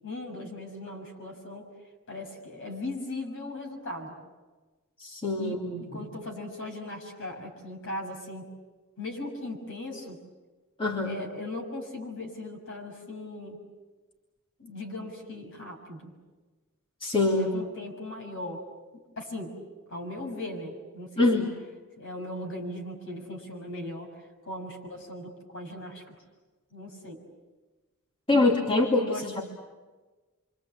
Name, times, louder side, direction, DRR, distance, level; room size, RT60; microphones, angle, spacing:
voice 1, 0.0-1.7 2.1-4.1 5.4-8.5 9.0-10.2 11.0-13.6 14.6-16.1 17.3-18.6 19.2-19.5 19.9-21.5 22.0-26.1 26.7-27.2 28.3-29.3, left 2 dB, 60° left, 2 dB, 6.5 m, -38 dB
voice 2, 5.0-5.8 10.8-11.2 17.0-17.5 21.2-21.5 28.3-29.4, left 2 dB, 25° left, -2 dB, 2.7 m, -24 dB
28.0 x 25.5 x 8.2 m, 1.3 s
head